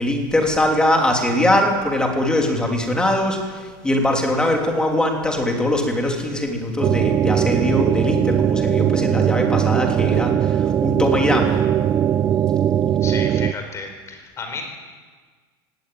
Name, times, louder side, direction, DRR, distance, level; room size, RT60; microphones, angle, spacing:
voice 1, 0.0-11.6, left 1 dB, 5° left, 1 dB, 3.2 m, -21 dB
sound 1, 6.8-13.5, right 9 dB, 25° right, 0.5 m, -19 dB
voice 2, 13.0-14.6, left 4 dB, 20° left, 4 dB, 4.6 m, -32 dB
18.0 x 17.5 x 9.2 m, 1.5 s
supercardioid pair, 150°, 13 cm